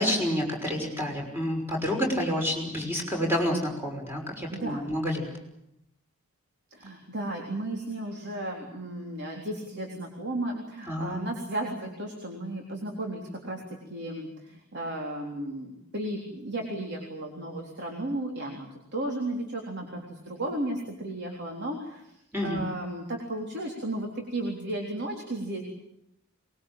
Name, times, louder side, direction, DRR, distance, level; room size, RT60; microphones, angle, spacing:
voice 1, 0.0-5.3 10.9-11.2 22.3-22.6, equal, 10° right, 1 dB, 5.9 m, -29 dB
voice 2, 4.5-4.9 6.7-18.7 18.9-22.0 22.4-25.6, right 1 dB, 50° right, 0 dB, 3.7 m, -34 dB
23.5 x 21.0 x 8.9 m, 0.81 s
head